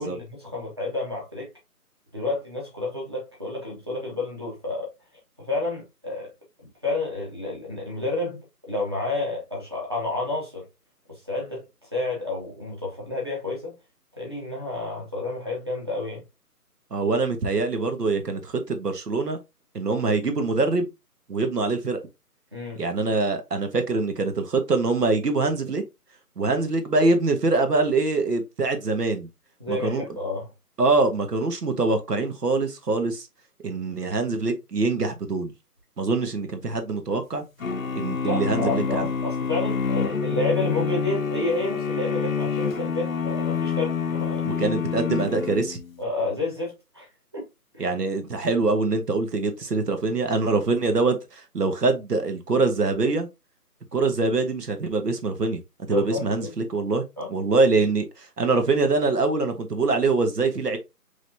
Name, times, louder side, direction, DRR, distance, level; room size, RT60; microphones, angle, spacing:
voice 1, 0.0-1.5 2.1-4.9 5.4-6.3 6.8-8.4 8.7-10.6 11.1-11.6 11.9-13.8 14.2-16.2 22.5-22.8 29.6-30.5 38.2-44.5 46.0-47.1 47.3-47.5 47.7-47.8 55.9-56.5 57.2-57.3, left 2 dB, 15° right, 1.0 m, -30 dB
voice 2, 16.9-19.4 19.7-20.9 21.3-22.0 22.8-25.8 26.4-29.3 29.7-30.0 30.8-33.3 33.6-35.5 36.0-37.4 37.9-39.1 44.4-45.8 47.8-53.3 53.9-55.6 55.9-57.0 57.3-60.8, right 3 dB, 80° right, 1.4 m, -24 dB
sound 1, 37.6-45.9, left 5 dB, 60° left, 0.7 m, -27 dB
5.0 x 3.1 x 2.7 m
figure-of-eight pair, 170°, 47 cm